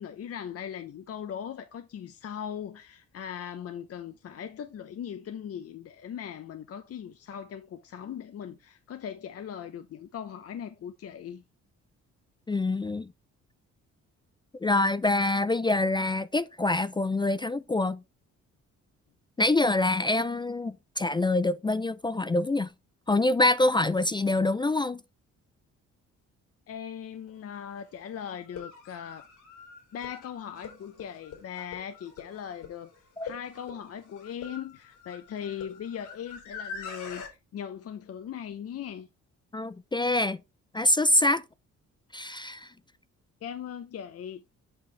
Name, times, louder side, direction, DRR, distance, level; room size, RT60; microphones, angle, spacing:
voice 1, 0.0-11.4 26.7-29.2 29.9-32.9 33.2-39.1 43.4-44.4, left 8 dB, 50° left, 0.7 m, -39 dB
voice 2, 12.5-13.1 14.6-18.0 19.4-22.7 23.1-25.0 33.2-33.3 39.5-40.4 40.7-41.4 42.1-42.7, left 2 dB, 15° left, 0.4 m, -25 dB
sound 1, 27.3-27.4 28.4-37.3, left 6 dB, 90° left, 4.2 m, -44 dB
7.9 x 5.8 x 3.2 m
cardioid pair, 90°, 30 cm